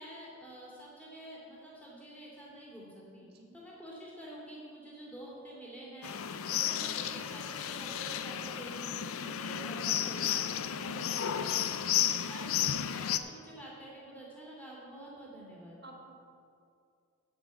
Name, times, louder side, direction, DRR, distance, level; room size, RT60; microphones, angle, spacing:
voice 1, 0.0-15.8, right 1 dB, 5° left, -5 dB, 2.6 m, -48 dB
voice 2, 3.2-3.6 9.7-10.2 12.2-12.3 15.8-16.1, right 1 dB, 45° right, 0 dB, 1.6 m, -53 dB
sound 1, 6.0-13.2, left 9 dB, 75° left, 0.5 m, -33 dB
8.2 x 8.1 x 7.7 m, 2.4 s
head